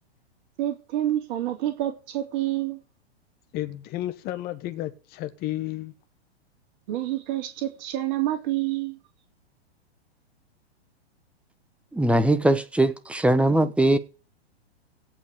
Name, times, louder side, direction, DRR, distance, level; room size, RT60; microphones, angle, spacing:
voice 1, 0.6-2.8 6.9-9.0, right 13 dB, 45° right, 3.1 m, -28 dB
voice 2, 3.5-5.9, left 14 dB, 30° left, 1.5 m, -32 dB
voice 3, 11.9-14.0, right 1 dB, 5° right, 1.1 m, -21 dB
17.0 x 5.7 x 7.0 m
hypercardioid pair, 115°, 33 cm